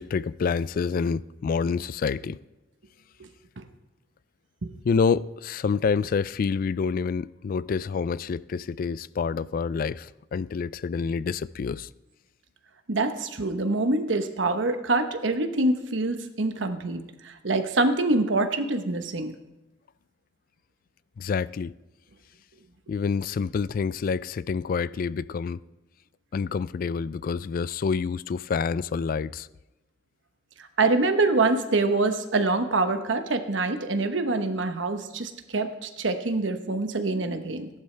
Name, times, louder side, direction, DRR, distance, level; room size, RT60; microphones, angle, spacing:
voice 1, 0.0-2.4 4.8-11.9 21.2-21.7 22.9-25.6 26.3-29.5, left 5 dB, 50° left, 0.3 m, -27 dB
voice 2, 12.9-19.3 30.8-37.7, right 2 dB, 80° right, 1.0 m, -25 dB
17.5 x 11.0 x 3.3 m
head